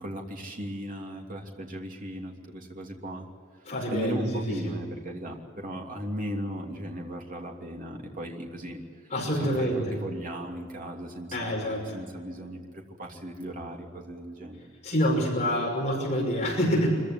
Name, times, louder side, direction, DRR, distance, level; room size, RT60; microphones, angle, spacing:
voice 1, 0.0-3.2 3.9-9.1 9.4-12.7 13.0-14.6, right 1 dB, 40° right, 1 dB, 3.0 m, -37 dB
voice 2, 3.6-4.7 9.1-9.9 11.3-11.9 14.8-17.0, equal, 30° left, -1 dB, 5.5 m, -27 dB
25.0 x 15.5 x 9.9 m, 2.1 s
head